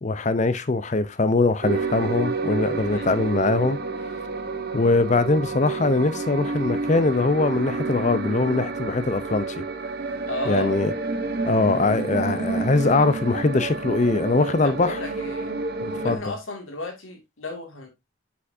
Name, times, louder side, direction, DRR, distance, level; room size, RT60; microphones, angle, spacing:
voice 1, 0.0-3.8 4.7-9.6 10.5-10.9 11.4-15.0 15.8-16.2, left 3 dB, 35° left, 0.5 m, -22 dB
sound 1, 1.6-16.2, right 3 dB, 50° right, 0.8 m, -29 dB
voice 2, 10.3-10.8 14.6-15.5 15.9-17.9, left 2 dB, 80° left, 2.1 m, -34 dB
6.1 x 5.9 x 2.6 m
head